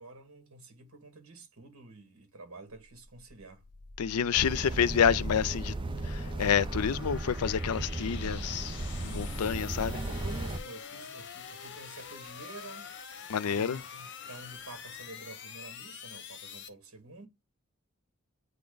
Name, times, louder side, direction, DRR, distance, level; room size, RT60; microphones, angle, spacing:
voice 1, 0.0-3.6 9.9-12.9 13.4-17.3, right 2 dB, 70° right, 2.1 m, -49 dB
sound 1, 2.8-16.7, left 6 dB, 55° left, 0.9 m, -46 dB
voice 2, 4.0-5.7 6.1-8.8 9.0-10.0 13.3-13.8, left 7 dB, 85° left, 0.4 m, -28 dB
sound 2, 4.4-10.6, right 2 dB, 20° right, 0.5 m, -35 dB
9.1 x 3.4 x 3.9 m
head